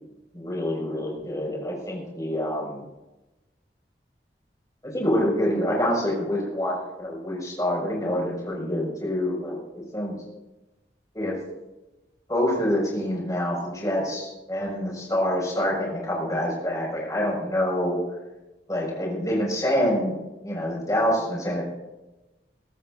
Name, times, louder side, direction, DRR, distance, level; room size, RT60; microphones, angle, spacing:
voice 1, 0.3-2.9 4.8-9.6 9.9-10.1 11.1-11.4 12.3-18.0 18.7-20.1 20.4-21.6, equal, 20° left, -3 dB, 5.6 m, -26 dB
22.5 x 14.0 x 2.6 m, 1.0 s
head